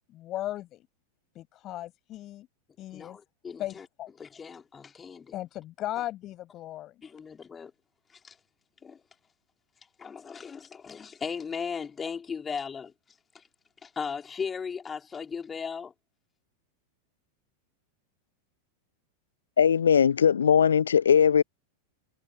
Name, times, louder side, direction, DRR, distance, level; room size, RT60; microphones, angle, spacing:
voice 1, 0.1-0.9 1.3-2.5 2.8-3.2 3.6-4.1 5.3-7.0, left 14 dB, 35° left, 5.1 m, -37 dB
voice 2, 2.9-3.8 4.2-5.3 7.0-7.7 8.2-8.3 8.8-9.0 10.0-12.9 13.3-13.4 13.8-15.9, left 6 dB, 20° left, 3.2 m, -37 dB
voice 3, 19.6-21.4, left 7 dB, 70° left, 0.7 m, -20 dB
figure-of-eight pair, 90°, 0 cm